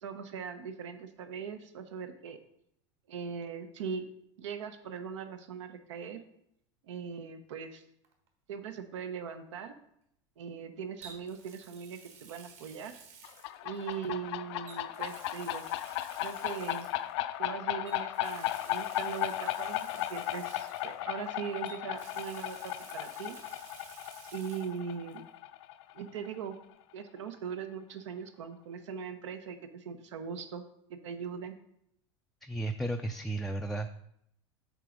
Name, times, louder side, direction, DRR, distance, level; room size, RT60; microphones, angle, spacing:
voice 1, 0.0-2.4 3.1-4.0 4.4-6.2 6.8-7.8 8.5-9.7 10.4-12.9 13.6-15.7 16.2-16.9 17.4-23.4 24.3-25.2 25.9-26.5 26.9-30.6 30.9-31.6, right 7 dB, 80° right, 8 dB, 0.9 m, -40 dB
Water tap faucet, 8.0-8.3 11.0-14.1 14.6-17.1 17.9-21.3 21.6-24.8 25.1-25.2 26.8-26.9, right 5 dB, 50° right, 1.6 m, -53 dB
sound 1, 13.2-26.6, left 14 dB, 65° left, 0.4 m, -36 dB
voice 2, 32.4-33.9, right 2 dB, ahead, 3 dB, 0.4 m, -34 dB
7.5 x 4.0 x 5.0 m, 0.74 s
hypercardioid pair, 110°, 15 cm